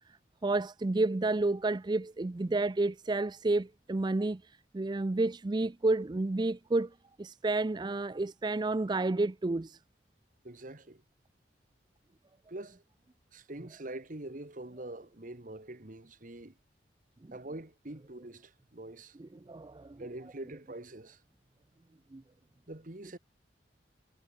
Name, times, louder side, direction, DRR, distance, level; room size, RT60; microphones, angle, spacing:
voice 1, 0.4-4.4 4.7-6.9 7.2-9.8 19.2-20.0 22.1-22.2, right 2 dB, 25° right, 0.4 m, -30 dB
voice 2, 10.4-11.0 12.5-12.8 13.3-16.5 17.3-19.2 20.0-21.2 22.7-23.2, right 1 dB, 45° right, 1.7 m, -44 dB
head